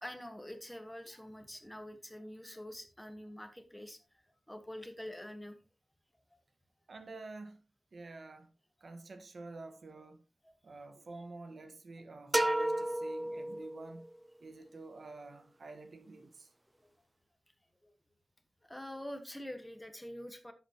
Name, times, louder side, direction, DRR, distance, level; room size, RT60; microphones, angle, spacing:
voice 1, 0.0-4.1 4.5-5.6 6.3-6.4 10.4-10.6 17.8-17.9 18.6-20.5, left 1 dB, 10° left, 1.3 m, -46 dB
voice 2, 6.9-7.6 7.9-8.5 8.8-10.2 10.6-14.0 14.4-16.5, right 3 dB, 65° right, 1.4 m, -49 dB
sound 1, 12.3-14.1, right 1 dB, 15° right, 0.5 m, -32 dB
10.5 x 8.0 x 2.9 m
wide cardioid pair, 100°, 0 cm